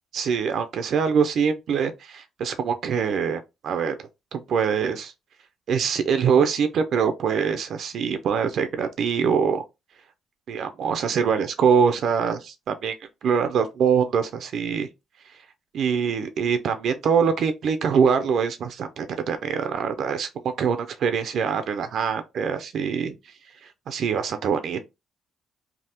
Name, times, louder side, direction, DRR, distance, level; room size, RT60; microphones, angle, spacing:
voice 1, 0.1-4.0 4.3-5.1 5.7-9.6 10.5-14.9 15.7-20.3 20.6-23.1 23.6-24.8, right 6 dB, 65° right, 0.4 m, -24 dB
3.3 x 2.0 x 2.8 m
cardioid pair, 90°, 0 cm